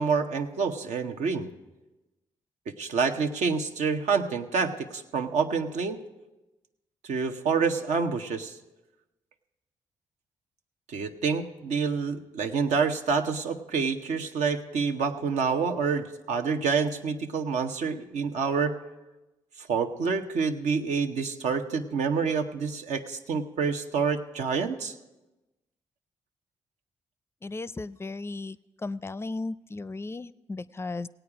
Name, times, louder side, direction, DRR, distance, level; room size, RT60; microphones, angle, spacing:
voice 1, 0.0-1.5 2.7-6.0 7.0-8.6 10.9-18.7 19.6-24.9, right 5 dB, 75° right, 5 dB, 0.8 m, -27 dB
voice 2, 27.4-28.6 28.8-31.1, left 3 dB, 20° left, 18 dB, 0.4 m, -35 dB
17.0 x 8.9 x 4.8 m, 1.1 s
supercardioid pair, 50°, 12 cm